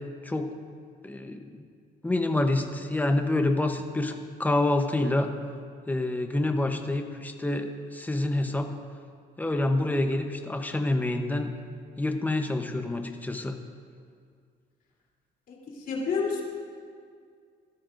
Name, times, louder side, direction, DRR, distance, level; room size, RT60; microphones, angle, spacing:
voice 1, 0.2-0.5 1.0-1.6 2.0-5.3 5.9-8.7 9.4-11.5 12.0-13.6, left 2 dB, 10° left, 5 dB, 0.9 m, -27 dB
voice 2, 15.9-16.4, left 5 dB, 60° left, -2 dB, 3.3 m, -28 dB
17.0 x 13.0 x 2.6 m, 2.2 s
cardioid pair, 110°, 17 cm